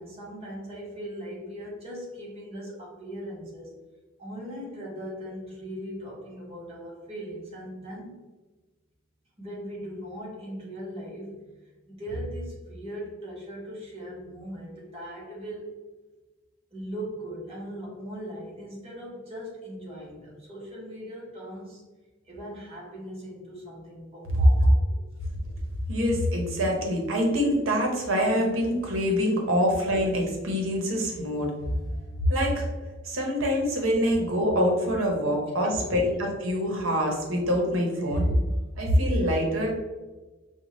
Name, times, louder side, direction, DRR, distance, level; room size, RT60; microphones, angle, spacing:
voice 1, 0.0-3.8 4.2-8.2 9.4-15.8 16.7-21.8 22.2-25.0 35.8-36.0, equal, 30° right, -5 dB, 1.3 m, -39 dB
voice 2, 24.3-24.7 25.9-31.5 32.3-32.7 33.0-38.3 38.8-39.7, equal, 85° right, 1 dB, 1.0 m, -24 dB
5.0 x 2.4 x 3.1 m, 1.2 s
head